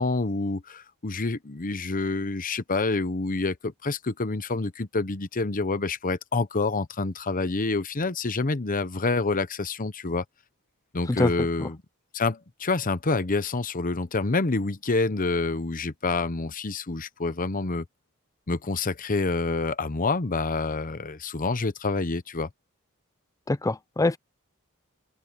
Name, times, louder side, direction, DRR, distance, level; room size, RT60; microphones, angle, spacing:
voice 1, 0.0-10.2 10.9-11.8 12.1-17.8 18.5-22.5, left 3 dB, 40° left, 0.9 m, -27 dB
voice 2, 23.5-24.2, left 2 dB, 15° left, 0.5 m, -24 dB
open air
head